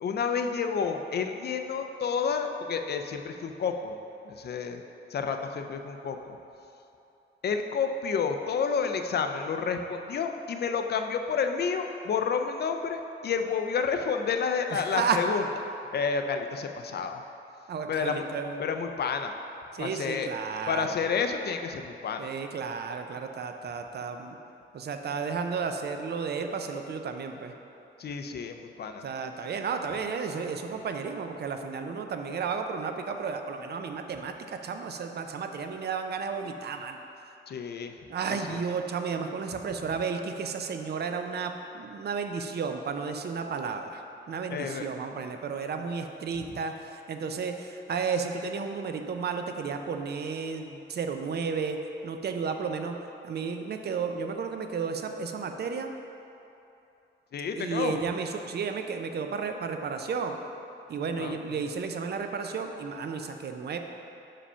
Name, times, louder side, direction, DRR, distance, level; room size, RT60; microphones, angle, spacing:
voice 1, 0.0-4.0 4.2-4.8 5.1-6.4 7.4-15.4 15.9-17.2 17.9-18.3 18.6-19.3 19.8-20.3 20.7-22.3 28.0-29.1 37.5-37.9 38.5-38.6 44.5-44.9 57.3-58.0 61.2-61.4, left 6 dB, 55° left, 6 dB, 0.4 m, -30 dB
voice 2, 14.7-15.2 17.7-18.6 19.7-20.9 22.2-24.4 24.7-27.5 29.0-37.0 38.1-51.8 52.0-55.9 57.5-60.4 60.9-63.8, right 5 dB, 55° right, 6 dB, 0.5 m, -33 dB
5.6 x 5.1 x 5.5 m, 2.8 s
wide cardioid pair, 165°, 20 cm